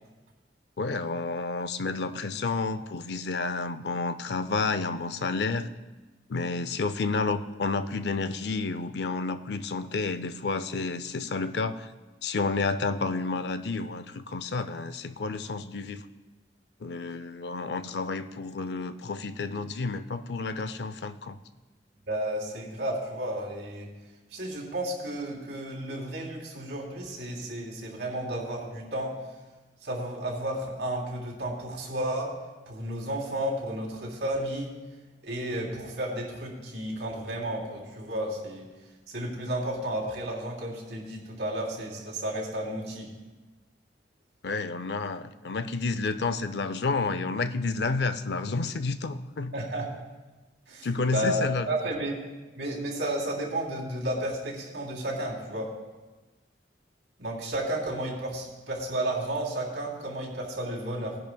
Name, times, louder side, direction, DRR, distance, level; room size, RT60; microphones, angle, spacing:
voice 1, 0.8-5.7 6.3-11.9 12.2-16.0 16.8-21.4 44.4-49.5 50.8-51.7, left 3 dB, 65° left, 11 dB, 0.5 m, -30 dB
voice 2, 22.1-23.9 24.3-29.1 29.8-32.3 32.7-34.7 35.2-38.7 39.1-43.1 49.5-49.9 50.7-52.2 52.5-55.7 57.2-61.2, right 1 dB, 80° right, -2 dB, 3.1 m, -32 dB
19.5 x 10.5 x 2.3 m, 1.2 s
head